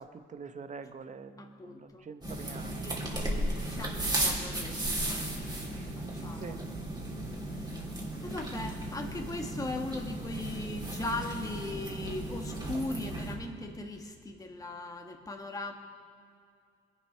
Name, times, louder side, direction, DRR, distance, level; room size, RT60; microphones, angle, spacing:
voice 1, 0.0-2.8 5.7-5.9 6.3-6.6, right 5 dB, 40° right, 10 dB, 0.9 m, -45 dB
voice 2, 1.4-2.0 2.8-6.6 7.5-7.9 8.2-15.7, left 2 dB, 15° left, 2 dB, 1.4 m, -39 dB
sound 1, 2.2-13.3, right 1 dB, 20° right, 2.9 m, -35 dB
20.5 x 7.5 x 5.6 m, 2.3 s
cardioid pair, 90°, 20 cm